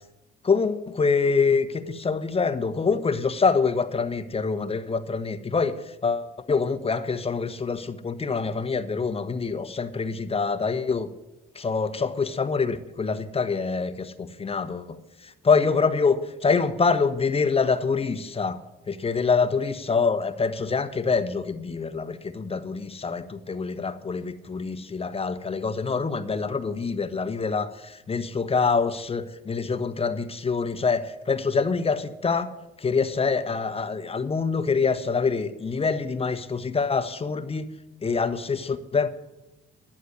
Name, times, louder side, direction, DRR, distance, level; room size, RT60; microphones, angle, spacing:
voice 1, 0.5-11.1 11.5-18.6 18.9-32.5 32.8-37.7 38.0-39.1, left 5 dB, 30° left, 10 dB, 1.2 m, -25 dB
11.5 x 9.5 x 9.7 m, 1.0 s
cardioid pair, 90°, 20 cm